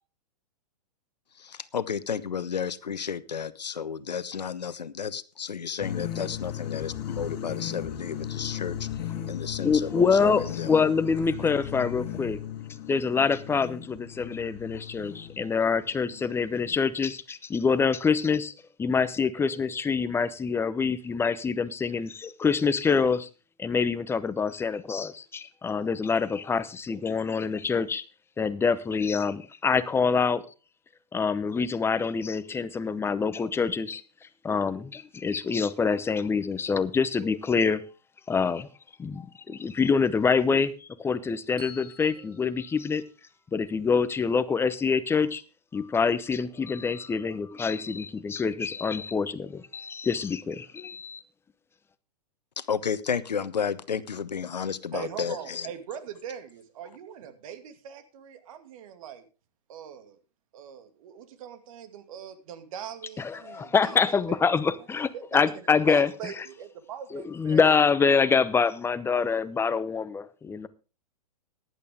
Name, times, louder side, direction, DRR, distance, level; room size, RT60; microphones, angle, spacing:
voice 1, 1.4-8.9 9.3-10.8 52.6-55.7, left 7 dB, 85° left, 16 dB, 0.9 m, -32 dB
sound 1, 5.8-16.8, left 10 dB, 45° left, 2.3 m, -37 dB
voice 2, 9.6-12.4 12.9-18.5 18.8-23.3 23.6-28.0 28.4-30.4 31.1-34.0 34.4-37.8 38.3-38.7 39.0-43.0 43.5-45.4 45.7-51.2 63.2-66.1 67.1-70.7, left 5 dB, 10° left, 15 dB, 0.8 m, -26 dB
Bell, 41.6-43.8, left 2 dB, 70° right, 3.8 m, -51 dB
voice 3, 54.9-59.3 59.7-60.2 60.5-64.4 65.1-67.6, right 9 dB, 55° right, 9 dB, 2.4 m, -41 dB
15.0 x 11.0 x 3.6 m, 0.33 s
hypercardioid pair, 115°, 21 cm